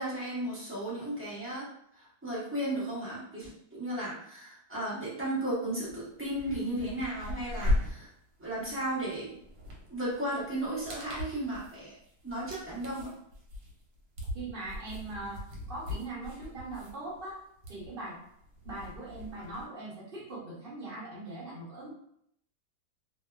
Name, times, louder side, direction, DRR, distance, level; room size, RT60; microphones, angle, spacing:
voice 1, 0.0-1.6 2.2-8.1 8.4-9.4 9.9-11.9 12.2-13.1, right 1 dB, 15° right, -9 dB, 0.4 m, -34 dB
sound 1, 5.9-6.0 6.3-19.7, left 1 dB, 75° right, 1.2 m, -38 dB
voice 2, 14.3-17.4 17.7-18.2 18.6-21.9, right 2 dB, 45° right, -7 dB, 0.8 m, -41 dB
2.7 x 2.2 x 2.2 m, 0.71 s
omnidirectional pair, 1.7 m